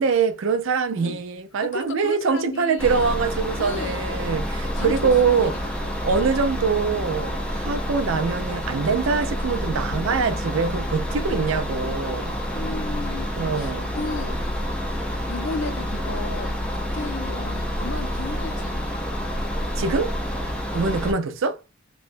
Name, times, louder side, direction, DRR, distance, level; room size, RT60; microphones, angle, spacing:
voice 1, 0.0-5.7 6.0-12.4 13.3-13.9 19.7-20.1 20.7-21.6, right 5 dB, 85° right, 0.5 m, -24 dB
voice 2, 1.6-3.0 3.6-4.3 4.7-5.5 5.8-6.0 11.2-11.5 12.5-14.4 15.3-18.8 20.7-21.0, left 3 dB, 70° left, 0.6 m, -34 dB
sound 1, 2.8-21.1, equal, 5° left, 0.5 m, -28 dB
2.9 x 2.2 x 2.5 m
head